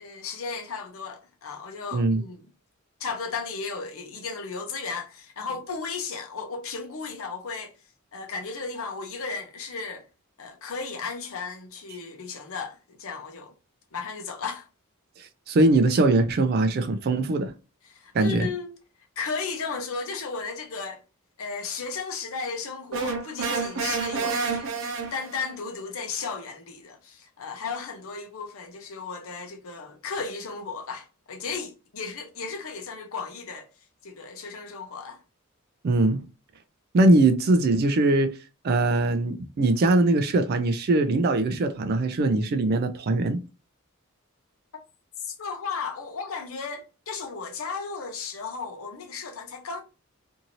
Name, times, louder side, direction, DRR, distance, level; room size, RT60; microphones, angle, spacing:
voice 1, 0.0-2.4 3.0-7.7 8.1-10.0 10.4-13.5 13.9-14.7 17.9-18.7 19.2-21.0 21.4-24.7 25.1-33.7 34.0-35.2 45.2-49.8, left 5 dB, 70° left, 0.7 m, -35 dB
voice 2, 1.9-2.2 15.2-17.5 18.1-18.5 35.8-36.2 36.9-38.3 38.6-43.4, right 2 dB, 45° right, 0.4 m, -21 dB
sound 1, 22.9-25.5, right 4 dB, 65° right, 0.8 m, -29 dB
2.6 x 2.6 x 2.9 m
head